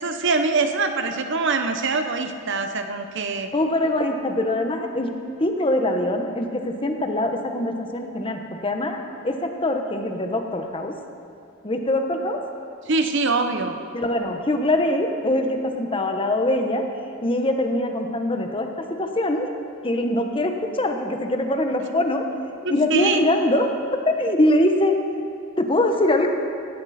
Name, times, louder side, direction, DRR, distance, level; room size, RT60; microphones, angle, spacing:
voice 1, 0.0-3.5 12.9-13.8 22.6-23.2, right 3 dB, 60° right, 6 dB, 1.0 m, -23 dB
voice 2, 3.5-5.1 5.4-9.0 9.2-10.9 11.6-12.4 13.9-16.8 17.2-19.5 19.8-22.2 22.7-23.7 24.0-24.9 25.6-26.3, left 1 dB, 25° left, 4 dB, 1.2 m, -23 dB
16.5 x 16.5 x 4.3 m, 2.4 s
head